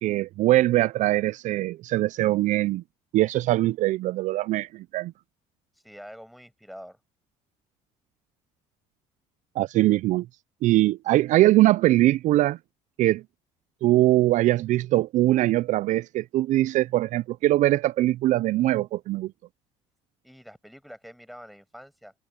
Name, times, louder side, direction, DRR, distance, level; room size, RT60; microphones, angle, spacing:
voice 1, 0.0-2.8 3.1-5.1 9.6-10.3 10.6-12.6 13.0-13.2 13.8-19.3, right 16 dB, 60° right, 0.4 m, -22 dB
voice 2, 5.8-7.0 20.2-22.1, equal, ahead, 6.2 m, -45 dB
cardioid pair, 100°, 14 cm